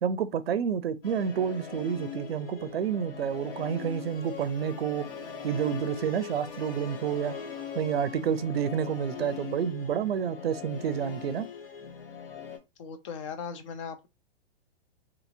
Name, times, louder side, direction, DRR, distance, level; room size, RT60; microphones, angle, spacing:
voice 1, 0.0-5.1 5.4-7.3 7.8-11.5, right 8 dB, 75° right, 0.5 m, -29 dB
Musical instrument, 1.0-12.6, left 6 dB, 70° left, 0.9 m, -41 dB
voice 2, 12.8-14.1, left 6 dB, 35° left, 0.4 m, -38 dB
2.8 x 2.7 x 2.5 m
hypercardioid pair, 120°, 30 cm